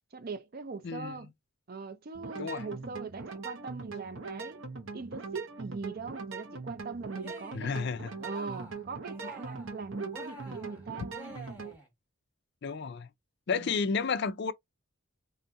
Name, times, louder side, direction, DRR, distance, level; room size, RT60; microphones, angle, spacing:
voice 1, 0.1-1.3 1.7-4.6 4.9-7.8 8.2-11.4 13.5-13.7, right 4 dB, 45° right, 0.5 m, -41 dB
voice 2, 0.8-1.2 2.4-2.6 7.5-8.1 12.6-13.1 13.5-14.5, left 5 dB, 50° left, 0.4 m, -31 dB
sound 1, 2.1-11.7, right 4 dB, 65° right, 0.8 m, -42 dB
Cheering, 7.1-7.8 8.1-8.8 9.1-9.8 10.1-11.9, right 1 dB, 10° right, 1.4 m, -49 dB
4.0 x 2.6 x 2.3 m
head